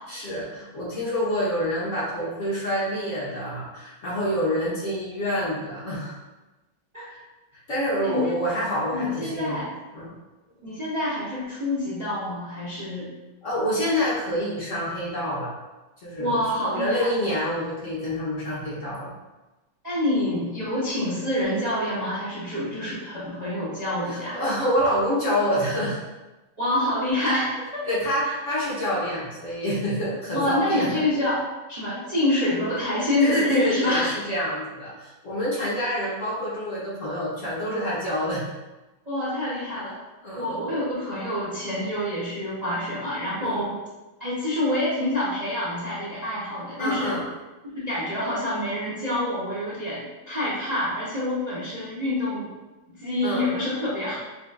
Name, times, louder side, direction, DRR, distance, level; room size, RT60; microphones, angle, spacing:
voice 1, 0.1-6.2 7.1-7.2 7.7-9.6 9.9-10.1 13.4-15.5 16.0-16.4 16.7-19.1 24.0-26.0 27.8-30.9 33.2-38.5 40.2-40.5 43.4-43.6 46.8-47.2 53.2-53.5, equal, 50° left, -7 dB, 1.0 m, -27 dB
voice 2, 8.9-9.6 10.6-13.1 16.2-17.1 19.8-24.4 26.6-27.8 28.2-28.3 30.3-31.4 31.7-34.1 39.1-40.0 40.4-43.8 44.2-47.2 47.7-52.5 53.0-54.2, left 1 dB, 65° right, -9 dB, 0.4 m, -27 dB
5.8 x 2.4 x 2.3 m, 1.1 s
omnidirectional pair, 2.1 m